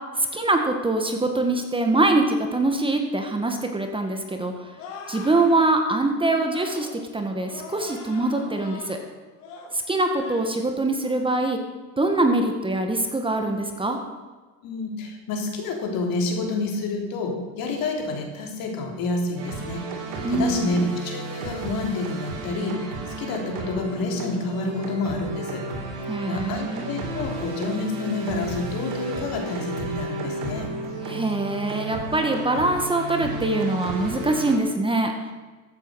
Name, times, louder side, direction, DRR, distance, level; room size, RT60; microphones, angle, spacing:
voice 1, 0.2-4.5 5.1-6.9 7.1-9.0 9.7-11.6 12.0-14.0 20.2-20.8 26.1-26.9 31.0-35.1, right 2 dB, 15° right, 4 dB, 1.6 m, -23 dB
sound 1, 4.8-5.7 6.4-6.9 7.4-9.0 9.4-9.7 10.1-10.5 10.9-11.2, left 4 dB, 80° left, 3.8 m, -41 dB
voice 2, 14.6-19.8 20.3-22.8 23.2-25.7 26.3-30.7, left 3 dB, 60° left, 2 dB, 3.3 m, -28 dB
sound 2, 19.4-34.6, right 2 dB, 75° right, 3.5 m, -33 dB
14.5 x 8.5 x 6.3 m, 1.3 s
supercardioid pair, 110°, 39 cm